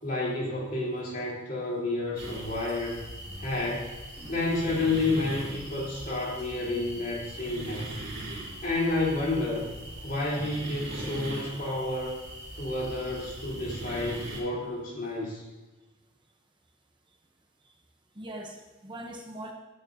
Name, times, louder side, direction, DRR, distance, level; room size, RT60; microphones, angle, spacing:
voice 1, 0.0-3.1 3.4-4.0 4.3-7.9 8.6-9.7 10.0-12.2 12.6-15.4, left 2 dB, 40° left, -5 dB, 3.4 m, -30 dB
sound 1, 2.2-14.4, right 1 dB, 55° right, 3.4 m, -40 dB
voice 2, 18.2-19.5, right 1 dB, 20° right, 2 dB, 0.8 m, -41 dB
17.5 x 9.3 x 2.7 m, 1.2 s
head